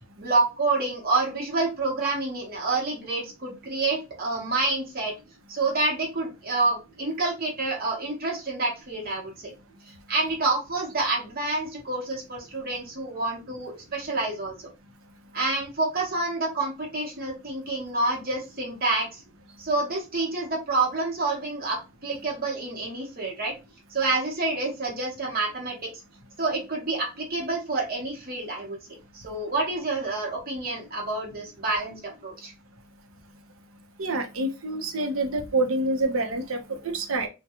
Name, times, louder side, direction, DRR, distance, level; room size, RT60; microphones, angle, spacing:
voice 1, 0.2-5.1 5.5-9.5 9.9-14.5 15.3-19.2 19.6-23.5 23.9-25.7 26.4-28.8 29.1-32.5, right 3 dB, 45° right, -1 dB, 0.9 m, -28 dB
voice 2, 34.0-37.3, right 2 dB, 80° right, 5 dB, 0.7 m, -27 dB
3.5 x 2.2 x 2.8 m, 0.28 s
head